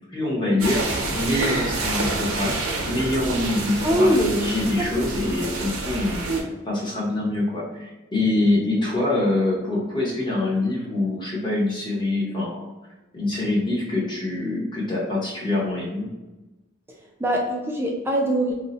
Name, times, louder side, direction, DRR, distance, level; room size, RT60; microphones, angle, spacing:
voice 1, 0.1-0.9 1.1-6.3 6.7-12.7 13.1-16.1, left 2 dB, 20° left, -4 dB, 0.8 m, -25 dB
sound 1, 0.6-6.4, right 2 dB, 90° right, 0.6 m, -27 dB
voice 2, 3.8-4.4 4.8-4.9 17.2-18.5, equal, 10° right, -1 dB, 0.3 m, -22 dB
2.7 x 2.0 x 3.8 m, 1.1 s
head